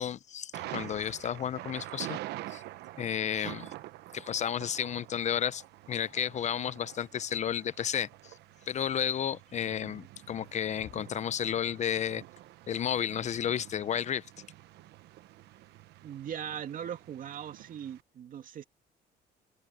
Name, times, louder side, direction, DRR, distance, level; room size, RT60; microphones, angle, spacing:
voice 1, 0.0-2.2 2.5-2.6 3.0-3.7 4.1-5.6 5.9-8.3 8.7-12.2 12.7-14.3, left 9 dB, 45° left, 0.7 m, -32 dB
Thunder, 0.5-18.0, right 15 dB, 80° right, 1.0 m, -47 dB
voice 2, 16.0-18.6, right 9 dB, 55° right, 2.6 m, -39 dB
open air
cardioid pair, 110°, 17 cm